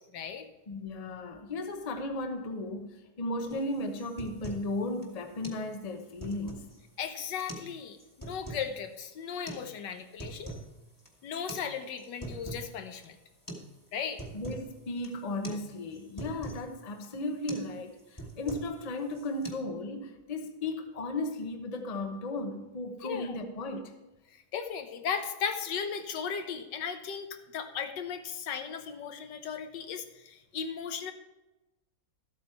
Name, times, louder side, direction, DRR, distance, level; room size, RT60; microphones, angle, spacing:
voice 1, 0.1-0.5 7.0-10.5 11.2-13.2 13.9-14.2 23.0-23.4 24.3-31.1, left 7 dB, 85° left, 1.5 m, -36 dB
voice 2, 0.7-6.7 14.3-23.9, left 2 dB, 30° left, 0.7 m, -35 dB
sound 1, 3.5-3.6 4.0-4.7 5.0-5.1 5.4-5.6 6.0-6.8 7.3-7.7 8.0-8.7 9.5-9.6 10.0-10.7 11.0-11.1 11.5-11.7 12.0-12.7 13.0-13.1 13.5-13.7 14.0-14.7 15.0-15.2 15.4-15.6 15.9-16.6 17.0-17.2 17.5-17.7 18.0-18.8 19.1-19.5, right 2 dB, 10° left, 1.4 m, -42 dB
13.0 x 8.2 x 4.5 m
omnidirectional pair, 1.8 m